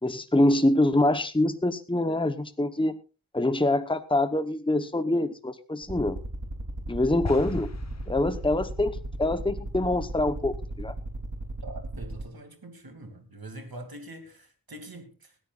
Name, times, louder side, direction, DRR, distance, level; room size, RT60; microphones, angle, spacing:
voice 1, 0.0-2.9 3.3-6.2 6.9-7.7 8.1-10.9, left 1 dB, 15° left, 1.0 m, -25 dB
sound 1, 5.8-12.2, right 1 dB, 55° right, 3.2 m, -35 dB
sound 2, 7.2-8.9, left 3 dB, 50° left, 1.3 m, -38 dB
voice 2, 11.6-15.3, right 1 dB, 80° right, 2.7 m, -44 dB
19.5 x 14.0 x 2.5 m
wide cardioid pair, 60°, 35 cm